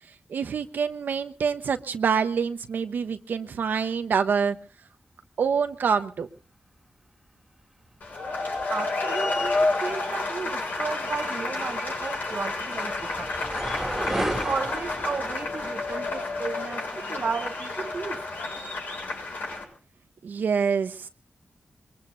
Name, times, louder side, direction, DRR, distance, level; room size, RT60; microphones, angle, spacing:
voice 1, 0.3-4.6 5.4-6.3 20.2-21.1, right 6 dB, 80° right, 1.1 m, -26 dB
sound 1, 8.0-19.6, left 3 dB, 70° left, 6.9 m, -30 dB
voice 2, 8.7-13.3 14.1-18.2, right 5 dB, 50° right, 0.9 m, -34 dB
sound 2, 11.3-16.5, right 1 dB, 10° right, 2.8 m, -35 dB
23.5 x 23.0 x 2.7 m
wide cardioid pair, 100°, 3 cm